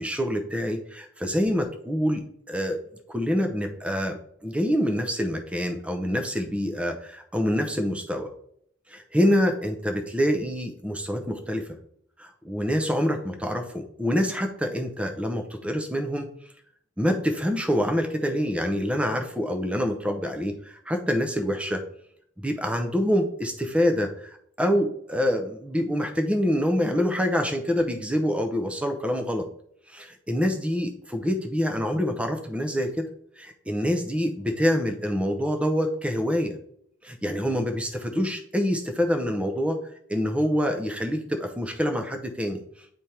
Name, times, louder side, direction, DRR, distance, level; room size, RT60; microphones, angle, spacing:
voice 1, 0.0-2.8 3.1-8.3 8.9-11.7 12.2-16.3 17.0-21.8 22.4-29.5 29.9-33.1 33.4-36.6 37.0-39.8 40.1-42.6, equal, 5° right, 5 dB, 0.6 m, -26 dB
9.4 x 3.4 x 4.3 m, 0.67 s
head